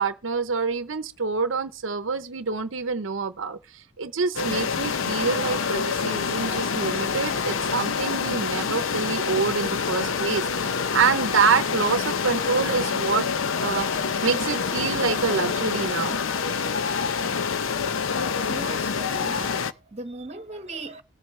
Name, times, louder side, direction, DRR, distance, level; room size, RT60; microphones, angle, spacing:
voice 1, 0.0-13.3 13.6-13.9 14.2-16.2, right 5 dB, 75° right, 0.8 m, -26 dB
sound 1, 4.4-19.7, left 6 dB, 80° left, 0.7 m, -27 dB
voice 2, 18.4-21.0, right 3 dB, 30° right, 1.2 m, -38 dB
19.0 x 8.0 x 3.2 m
head